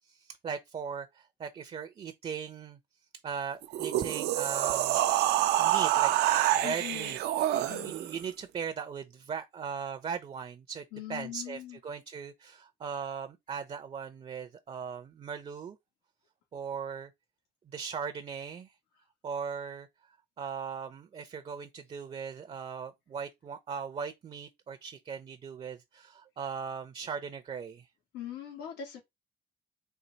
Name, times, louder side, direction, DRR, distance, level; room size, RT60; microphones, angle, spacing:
voice 1, 0.0-2.8 3.2-5.0 5.6-7.2 7.5-10.8 11.1-15.8 16.5-17.1 17.7-18.7 19.2-19.9 20.4-27.9, right 6 dB, 35° right, 0.6 m, -39 dB
sound 1, 3.6-8.2, right 13 dB, 80° right, 0.6 m, -27 dB
voice 2, 6.6-7.2 7.5-7.9 10.9-11.8 28.1-29.0, left 10 dB, 85° left, 1.8 m, -41 dB
4.4 x 2.5 x 3.9 m
cardioid pair, 110°, 17 cm